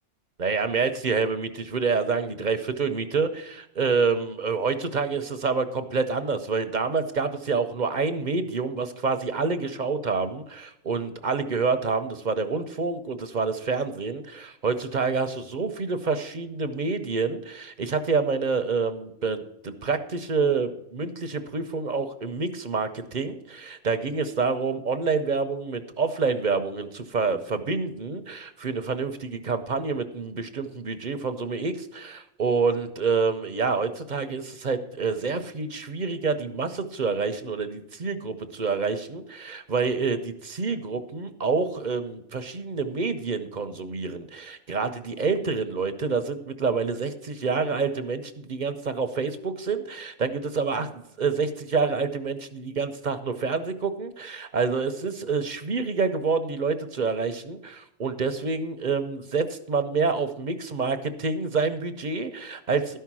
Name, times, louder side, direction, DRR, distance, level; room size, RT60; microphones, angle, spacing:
voice 1, 0.4-3.5 3.8-63.0, right 4 dB, 45° right, 9 dB, 0.8 m, -27 dB
12.5 x 5.6 x 6.1 m, 0.82 s
omnidirectional pair, 1.2 m